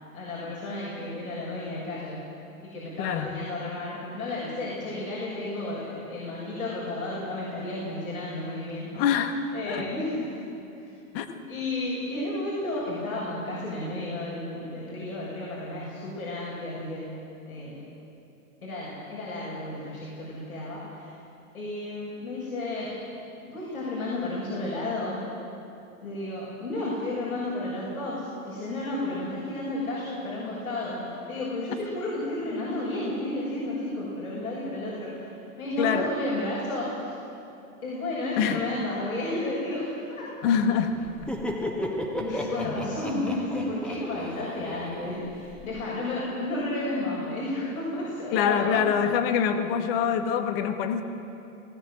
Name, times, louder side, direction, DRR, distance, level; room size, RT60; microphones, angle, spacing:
voice 1, 0.1-2.3 2.6-9.0 9.5-10.4 10.8-10.9 11.5-17.8 18.6-21.2 21.5-22.9 23.5-25.2 26.0-35.3 35.6-37.2 37.8-40.3 42.0-48.8, left 2 dB, 85° left, -7 dB, 7.0 m, -32 dB
voice 2, 3.0-3.3 8.9-9.4 9.7-9.9 11.1-11.4 35.8-36.1 38.4-38.6 40.4-41.3 42.3-42.8 48.3-51.0, left 7 dB, 45° left, 7 dB, 1.7 m, -25 dB
Laughter, 41.0-45.7, equal, ahead, 2.0 m, -34 dB
20.5 x 17.5 x 7.8 m, 2.7 s
hypercardioid pair, 125°, 42 cm